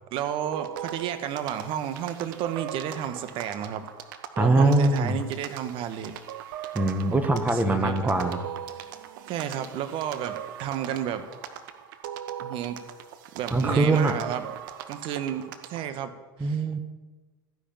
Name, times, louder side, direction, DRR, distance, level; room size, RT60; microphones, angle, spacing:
voice 1, 0.1-3.9 4.4-6.1 7.5-8.2 8.8-8.9 9.3-11.3 12.4-12.8 13.3-14.5 14.9-16.1 16.4-16.6, right 10 dB, 50° right, 10 dB, 1.5 m, -32 dB
sound 1, 0.5-15.9, right 10 dB, 65° right, 1.2 m, -39 dB
voice 2, 4.4-5.2 6.7-8.4 13.5-14.1 16.4-16.8, right 2 dB, 15° right, 6 dB, 1.6 m, -22 dB
14.5 x 10.5 x 7.1 m, 1.2 s
hypercardioid pair, 80°, 11 cm